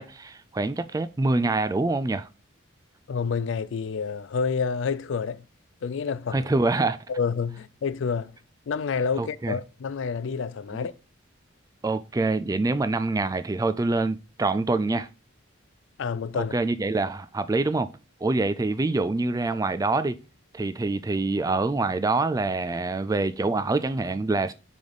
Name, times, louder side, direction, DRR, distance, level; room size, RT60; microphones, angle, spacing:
voice 1, 0.0-2.3 6.3-7.0 9.2-9.5 11.8-15.1 16.5-17.9 18.2-20.2 20.5-24.5, right 3 dB, 15° right, 0.3 m, -25 dB
voice 2, 3.1-5.4 5.8-6.5 7.1-8.3 8.7-10.9 16.0-16.5, left 5 dB, 65° left, 0.4 m, -28 dB
5.2 x 5.0 x 3.9 m
head